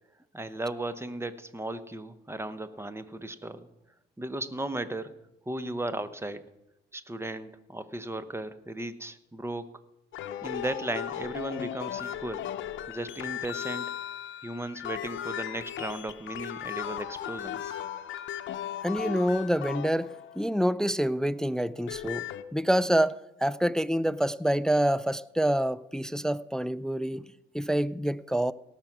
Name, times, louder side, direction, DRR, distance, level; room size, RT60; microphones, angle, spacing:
voice 1, 0.3-3.7 4.2-5.1 5.5-6.5 6.9-9.7 10.4-12.4 12.9-13.9 14.4-17.8, right 1 dB, 10° right, 0.9 m, -36 dB
sound 1, 10.1-20.6 21.7-22.4, left 11 dB, 70° left, 0.7 m, -37 dB
voice 2, 18.8-22.2 22.5-27.2 27.5-28.5, equal, 5° left, 0.3 m, -27 dB
17.5 x 5.9 x 6.1 m
cardioid pair, 90°, 20 cm